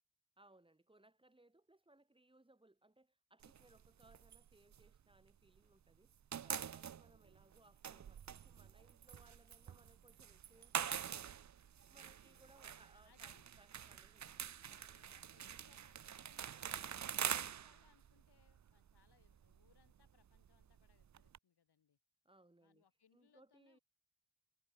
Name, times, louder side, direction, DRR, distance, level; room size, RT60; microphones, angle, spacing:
voice 1, 0.4-6.1 6.4-11.4 11.8-14.5 22.2-22.8 23.1-23.8, right 2 dB, 15° right, 3.7 m, -68 dB
sound 1, 3.4-5.7 5.9-21.4, right 9 dB, 45° right, 0.6 m, -46 dB
voice 2, 12.0-12.6 12.9-13.5 14.7-22.0 22.6-23.8, left 7 dB, 80° left, 4.5 m, -74 dB
wide cardioid pair, 170°, 39 cm